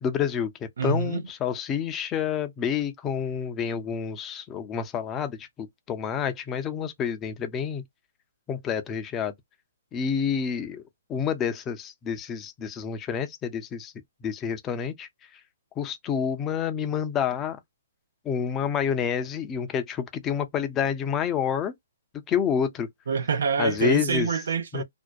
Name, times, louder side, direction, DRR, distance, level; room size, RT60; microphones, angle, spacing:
voice 1, 0.0-7.8 8.5-9.3 9.9-10.8 11.1-13.9 14.2-15.1 15.8-17.6 18.2-21.7 22.3-22.9 23.6-24.3 24.7-24.8, left 7 dB, 20° left, 0.5 m, -28 dB
voice 2, 0.8-1.2 23.1-24.8, right 6 dB, 70° right, 0.5 m, -26 dB
2.5 x 2.1 x 2.3 m
hypercardioid pair, 150°, 0 cm